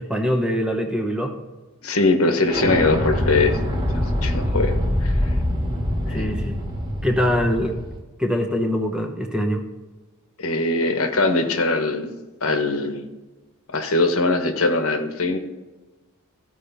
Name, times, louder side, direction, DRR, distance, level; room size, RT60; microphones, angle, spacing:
voice 1, 0.0-1.3 6.1-6.6 7.0-7.8 8.2-9.6, equal, 5° right, 3 dB, 0.8 m, -23 dB
voice 2, 1.8-3.6 4.0-4.8 5.0-5.3 6.1-6.5 10.4-12.1 12.4-13.0 13.7-15.4, left 3 dB, 80° left, 6 dB, 1.1 m, -21 dB
Explosion, 2.5-8.0, equal, 25° right, 1.7 m, -24 dB
15.0 x 4.9 x 4.1 m, 1.2 s
head